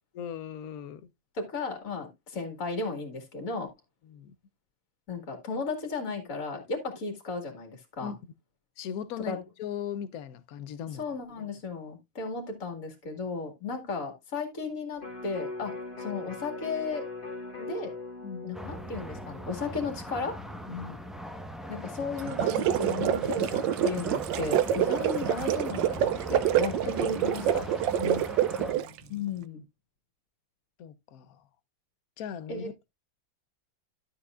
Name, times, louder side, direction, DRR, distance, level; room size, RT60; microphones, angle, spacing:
voice 1, 0.1-1.1 4.1-4.3 8.0-8.2 8.8-11.0 18.2-18.5 20.7-21.0 28.0-28.3 28.6-29.1 30.8-31.3 32.2-32.9, left 8 dB, 60° left, 1.1 m, -38 dB
voice 2, 1.3-3.7 5.1-8.1 9.3-9.4 11.0-17.0 17.6-17.9 18.4-20.4 21.7-27.7 29.1-29.6 32.5-32.7, left 4 dB, 45° left, 2.4 m, -35 dB
Electric guitar, 15.0-21.2 21.6-21.7, left 3 dB, 25° left, 2.4 m, -41 dB
sound 1, 18.5-28.7, equal, ahead, 0.7 m, -41 dB
sound 2, 22.2-29.0, right 10 dB, 75° right, 1.3 m, -27 dB
12.5 x 7.1 x 2.4 m
omnidirectional pair, 2.1 m